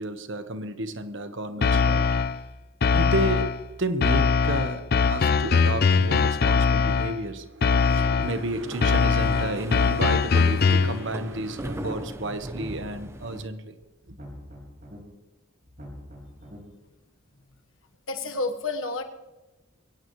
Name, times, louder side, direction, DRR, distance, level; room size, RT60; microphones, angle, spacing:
voice 1, 0.0-2.1 2.9-13.8 14.1-14.2, right 1 dB, 65° right, 1.2 m, -31 dB
sound 1, 1.6-2.4 2.8-3.6 4.0-7.2 7.6-8.4 8.8-11.0, left 5 dB, 45° left, 0.4 m, -21 dB
sound 2, 8.2-13.5, right 1 dB, 15° right, 0.7 m, -39 dB
sound 3, 11.6-12.0 12.4-13.4 14.0-15.0 15.6-16.6, equal, 45° right, 4.8 m, -44 dB
voice 2, 18.1-19.0, left 3 dB, 75° left, 1.4 m, -29 dB
22.5 x 17.5 x 3.2 m
head